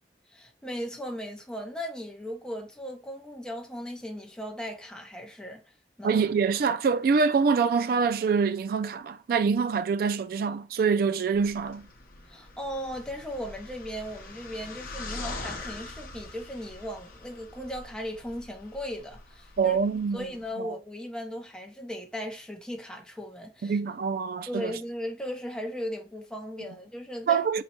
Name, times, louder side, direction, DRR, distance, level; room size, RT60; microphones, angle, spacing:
voice 1, 0.3-5.6 6.0-6.2 12.3-19.8 20.1-23.8 24.5-27.6, equal, 5° left, 0.7 m, -37 dB
voice 2, 6.0-11.8 19.6-20.3 20.6-20.7 23.6-24.7 27.3-27.6, right 5 dB, 55° right, 0.3 m, -25 dB
sound 1, 11.4-20.5, left 2 dB, 55° left, 0.8 m, -43 dB
4.1 x 2.2 x 4.3 m
head